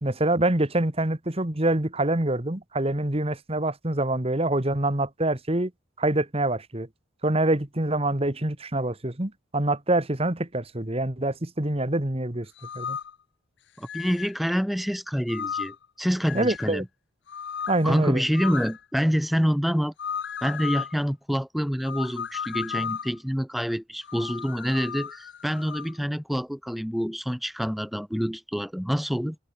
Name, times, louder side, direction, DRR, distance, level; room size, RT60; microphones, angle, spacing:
voice 1, 0.0-5.7 6.0-6.9 7.2-12.5 12.7-13.0 16.3-16.8 17.7-18.2, right 1 dB, 30° right, 1.6 m, -25 dB
sound 1, 12.6-13.2 13.9-14.4 15.3-15.9 16.2-16.8 17.3-17.9 18.4-18.8 20.0-20.9 21.9-23.2 24.0-25.9, left 7 dB, 55° left, 0.5 m, -34 dB
voice 2, 13.8-16.9 17.8-19.9 20.4-29.4, equal, ahead, 0.4 m, -27 dB
head